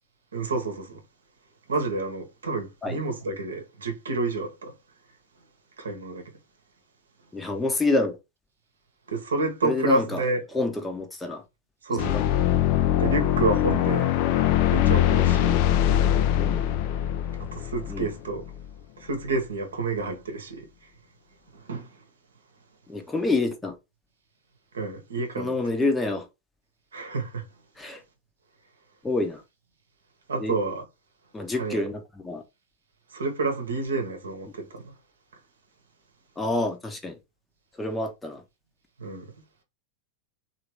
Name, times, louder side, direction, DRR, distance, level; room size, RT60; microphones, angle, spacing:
voice 1, 0.3-1.0 1.7-4.7 5.8-6.2 9.1-10.4 11.8-12.2 13.0-14.1 14.7-15.6 17.5-18.4 19.0-20.7 21.7-21.9 24.7-25.5 26.9-27.4 30.3-30.8 31.6-31.8 33.1-34.8 39.0-39.3, right 3 dB, 70° right, 0.9 m, -29 dB
voice 2, 7.3-8.2 9.6-10.2 10.5-11.4 11.9-12.2 16.4-16.6 17.9-18.1 22.9-23.7 25.4-26.3 27.8-28.0 29.0-29.4 30.4-30.6 31.3-32.4 36.4-37.2 37.8-38.4, left 2 dB, 10° left, 0.7 m, -27 dB
sound 1, 12.0-18.7, left 11 dB, 45° left, 0.4 m, -22 dB
3.3 x 2.5 x 3.0 m
figure-of-eight pair, 90°, 0 cm